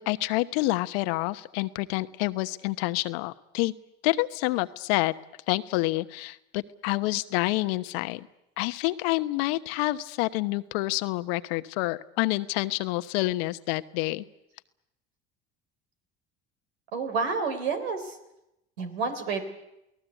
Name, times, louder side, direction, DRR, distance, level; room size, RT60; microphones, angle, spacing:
voice 1, 0.0-3.7 4.0-5.1 5.5-8.3 8.6-14.2, left 20 dB, 80° left, 13 dB, 1.1 m, -28 dB
voice 2, 16.9-18.2 18.8-19.4, right 4 dB, 90° right, 6 dB, 3.6 m, -29 dB
29.0 x 18.5 x 8.2 m, 0.85 s
hypercardioid pair, 75°, 30 cm